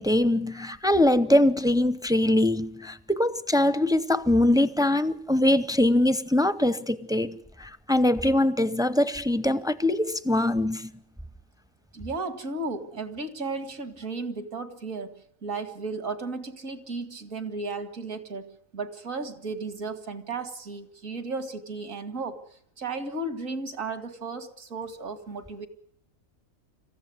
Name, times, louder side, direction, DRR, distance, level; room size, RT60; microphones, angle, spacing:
voice 1, 0.0-10.9, left 1 dB, 5° right, 0.5 m, -23 dB
voice 2, 11.9-22.4 22.8-25.7, right 3 dB, 75° right, 2.5 m, -34 dB
26.5 x 15.0 x 9.6 m
omnidirectional pair, 1.4 m